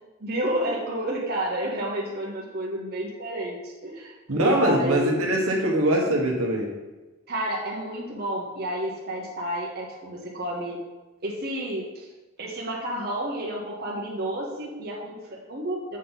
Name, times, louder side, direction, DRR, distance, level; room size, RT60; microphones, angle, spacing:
voice 1, 0.2-5.1 7.3-10.8 11.2-12.1 12.4-16.0, right 1 dB, 45° right, -3 dB, 1.0 m, -30 dB
voice 2, 4.3-6.7, right 1 dB, 70° right, -1 dB, 1.1 m, -22 dB
7.3 x 4.1 x 4.0 m, 1.1 s
head